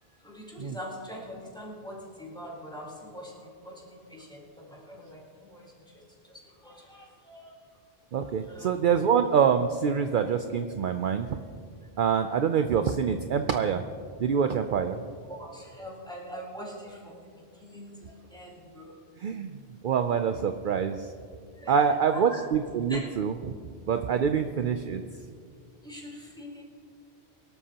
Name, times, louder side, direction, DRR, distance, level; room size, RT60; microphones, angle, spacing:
voice 1, 0.2-6.0 6.3-7.5 8.2-8.7 15.3-19.0 21.6-21.8 22.1-22.4 22.9-23.1 25.8-26.6, equal, 5° left, -4 dB, 3.8 m, -43 dB
voice 2, 8.1-11.4 12.0-13.8 14.2-15.0 19.2-19.6 19.8-21.1 21.7-23.5 23.9-25.0, right 7 dB, 60° right, 7 dB, 0.7 m, -25 dB
23.5 x 12.5 x 2.9 m, 2.2 s
omnidirectional pair, 1.1 m